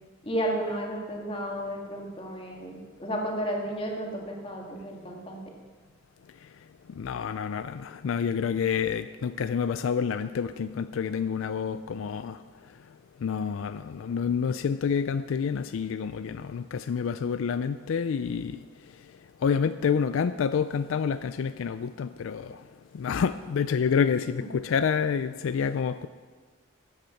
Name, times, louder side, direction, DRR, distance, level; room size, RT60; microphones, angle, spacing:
voice 1, 0.2-5.4 24.4-24.5, equal, 25° left, 1.8 m, -32 dB
voice 2, 7.0-12.4 13.2-18.6 19.4-22.6 22.9-26.1, left 6 dB, 75° left, 0.4 m, -28 dB
13.5 x 8.1 x 5.8 m
head